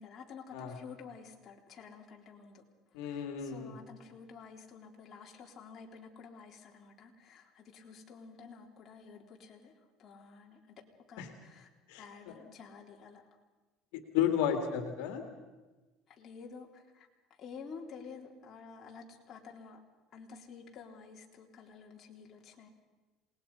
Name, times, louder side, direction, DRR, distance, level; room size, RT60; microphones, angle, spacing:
voice 1, 0.0-2.6 3.0-9.7 10.0-10.6 11.1-11.7 12.0-13.2 16.1-17.1 17.4-19.8 20.1-22.7, left 5 dB, 40° left, 0 dB, 3.8 m, -50 dB
voice 2, 2.9-3.7 11.2-11.3 11.9-12.0 14.1-15.2, left 9 dB, 85° left, 6 dB, 2.3 m, -32 dB
27.5 x 20.0 x 5.6 m, 1.2 s
cardioid pair, 125°, 0 cm